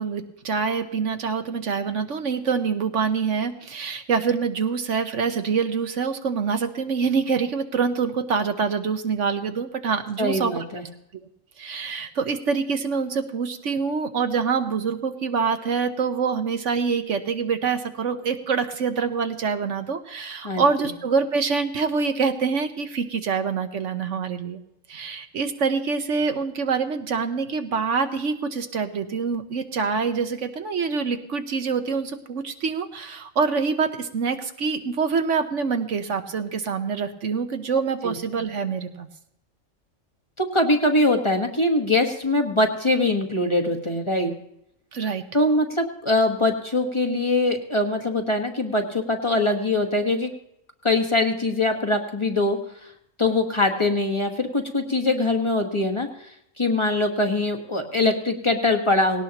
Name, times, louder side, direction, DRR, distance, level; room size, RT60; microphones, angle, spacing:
voice 1, 0.0-10.7 11.6-24.6 24.9-39.1 44.9-45.2, right 5 dB, 65° right, 7 dB, 1.3 m, -25 dB
voice 2, 10.2-10.8 20.4-20.9 38.0-38.1 40.4-44.3 45.3-50.3 50.8-52.6 53.2-56.1 56.6-59.2, left 2 dB, 25° left, 3 dB, 1.4 m, -22 dB
18.5 x 18.0 x 3.0 m, 0.79 s
omnidirectional pair, 1.4 m